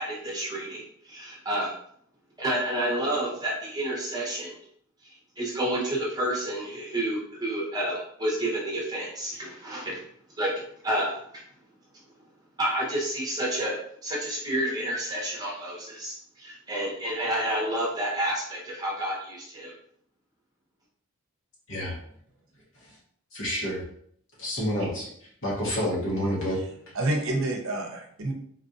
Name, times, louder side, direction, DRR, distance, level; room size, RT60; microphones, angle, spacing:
voice 1, 0.0-1.7 2.4-4.5 5.0-10.0 10.4-10.5 10.8-11.4 12.6-19.7, right 1 dB, 20° right, -4 dB, 1.0 m, -30 dB
voice 2, 23.3-23.8 24.4-25.1 25.4-26.6, equal, 60° left, -5 dB, 1.2 m, -28 dB
voice 3, 26.9-28.3, right 1 dB, 60° right, 2 dB, 0.7 m, -28 dB
4.1 x 2.6 x 2.6 m, 0.65 s
head